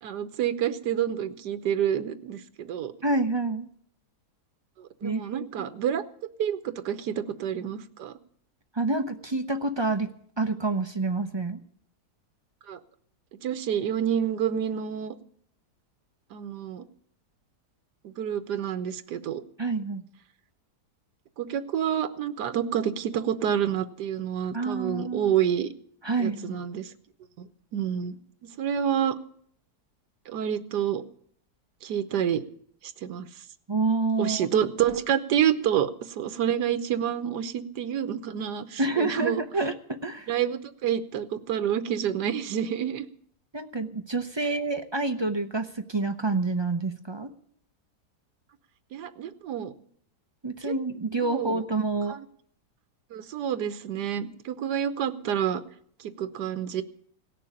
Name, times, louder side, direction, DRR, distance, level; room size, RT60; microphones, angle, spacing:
voice 1, 0.0-2.9 4.8-6.0 6.4-8.1 12.7-12.8 13.4-15.1 16.3-16.8 18.0-19.4 21.4-25.7 26.2-26.9 27.4-28.2 28.6-29.2 30.3-31.0 31.8-32.4 33.0-33.3 34.2-39.4 40.3-43.1 48.9-49.7 50.7-50.8 51.3-51.6 52.1-52.2 53.1-55.6 56.0-56.8, right 9 dB, 85° right, 11 dB, 1.5 m, -28 dB
voice 2, 3.0-3.7 5.0-5.6 8.7-11.6 19.6-20.0 24.5-25.3 26.0-26.6 33.7-34.5 38.8-40.3 43.5-47.3 50.4-52.2, right 3 dB, 40° right, 7 dB, 0.4 m, -28 dB
17.5 x 6.8 x 9.9 m, 0.62 s
omnidirectional pair, 1.8 m